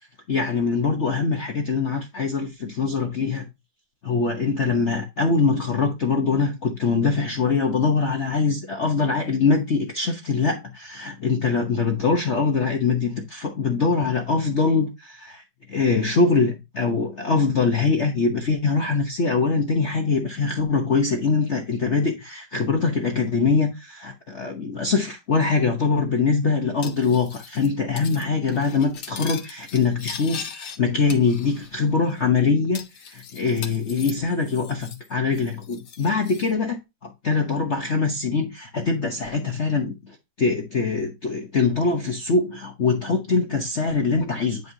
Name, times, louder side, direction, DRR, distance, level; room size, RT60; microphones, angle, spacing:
voice 1, 0.3-3.5 4.0-15.4 15.7-36.8 37.0-44.7, left 4 dB, 45° left, 1.1 m, -23 dB
Cutlery silverware, 26.8-27.7 28.0-28.2 28.5-30.8 31.1-31.8 32.1-32.2 32.7-35.1 35.3-36.5, left 7 dB, 60° left, 1.5 m, -39 dB
9.3 x 5.4 x 2.7 m
omnidirectional pair, 2.2 m